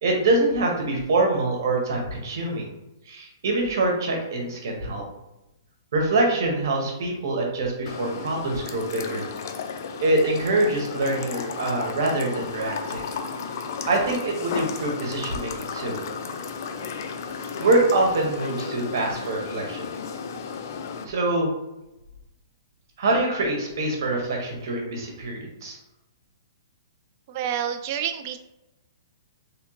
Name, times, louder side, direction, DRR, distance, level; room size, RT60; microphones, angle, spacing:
voice 1, 0.0-2.7 3.1-5.0 5.9-9.2 10.0-13.0 13.9-16.0 17.6-19.9 21.0-21.5 23.0-25.8, right 2 dB, 60° right, 0 dB, 1.4 m, -24 dB
sound 1, 7.9-21.0, left 6 dB, 55° left, 0.5 m, -34 dB
voice 2, 27.3-28.4, right 9 dB, 40° right, 8 dB, 0.3 m, -28 dB
3.4 x 3.4 x 3.0 m, 0.95 s
hypercardioid pair, 150°, 2 cm